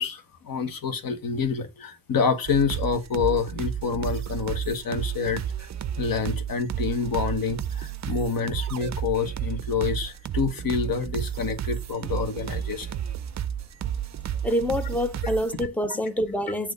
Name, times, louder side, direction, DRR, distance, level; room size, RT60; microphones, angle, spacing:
voice 1, 0.0-5.7 6.0-12.9, left 5 dB, 60° left, 1.3 m, -27 dB
sound 1, 2.5-15.7, right 9 dB, 45° right, 0.4 m, -32 dB
voice 2, 14.4-16.7, equal, 5° left, 0.5 m, -26 dB
8.5 x 3.2 x 5.3 m
wide cardioid pair, 175°, 39 cm